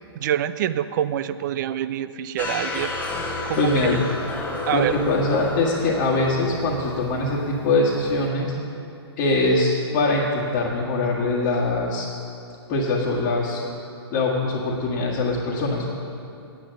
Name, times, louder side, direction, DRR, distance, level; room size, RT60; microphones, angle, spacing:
voice 1, 0.2-2.9 3.4-4.0 4.7-4.9, right 11 dB, 45° right, 14 dB, 0.5 m, -26 dB
sound 1, 2.4-8.3, left 2 dB, 10° left, 1.2 m, -32 dB
voice 2, 3.6-4.0 4.7-8.5 9.2-12.1 12.7-13.6 14.1-15.9, left 2 dB, 30° left, -5 dB, 1.5 m, -22 dB
9.0 x 8.9 x 7.6 m, 2.5 s
hypercardioid pair, 130°, 14 cm